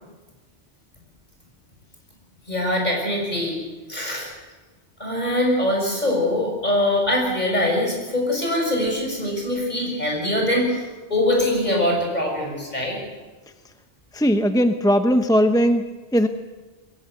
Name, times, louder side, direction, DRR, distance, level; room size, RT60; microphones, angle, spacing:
voice 1, 2.5-3.6 3.9-4.3 5.0-10.8 11.1-13.0, left 1 dB, 40° left, 0 dB, 6.7 m, -23 dB
voice 2, 14.1-16.3, equal, 5° left, 7 dB, 0.7 m, -19 dB
22.0 x 17.0 x 8.3 m, 1.3 s
omnidirectional pair, 1.2 m